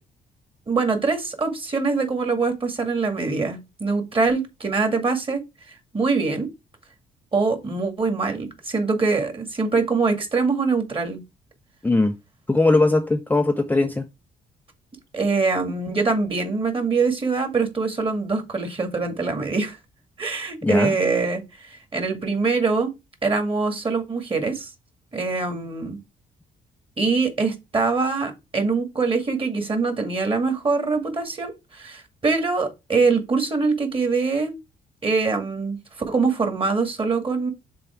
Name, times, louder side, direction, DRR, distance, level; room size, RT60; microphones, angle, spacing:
voice 1, 0.7-5.4 5.9-6.5 7.3-11.2 15.1-19.8 20.2-22.9 23.2-24.7 25.1-26.0 27.0-34.5 35.0-35.8 36.1-37.5, right 4 dB, 30° right, 2.1 m, -23 dB
voice 2, 11.8-12.1 12.5-14.1 20.6-20.9, left 2 dB, 10° left, 0.5 m, -19 dB
6.1 x 3.9 x 4.5 m
cardioid pair, 80°, 17 cm